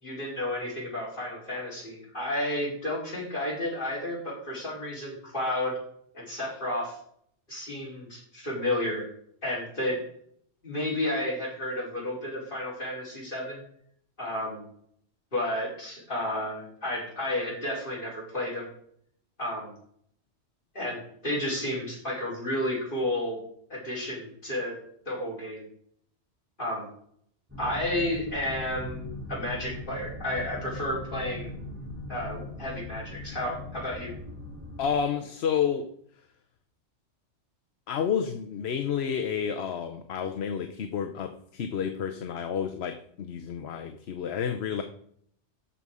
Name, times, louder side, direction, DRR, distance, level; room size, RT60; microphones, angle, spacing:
voice 1, 0.0-5.8 6.1-7.0 7.5-9.0 9.4-10.0 10.6-13.6 14.2-14.6 15.3-18.7 19.4-19.7 20.7-23.4 23.7-24.8 25.1-25.6 26.6-26.9 27.6-31.5 32.1-34.1, left 1 dB, 45° left, -6 dB, 4.8 m, -32 dB
sound 1, 27.5-35.0, left 1 dB, 10° right, 2.8 m, -40 dB
voice 2, 34.8-35.9 37.9-44.8, left 7 dB, 65° left, 6 dB, 1.0 m, -30 dB
13.0 x 5.5 x 4.8 m, 0.65 s
omnidirectional pair, 1.2 m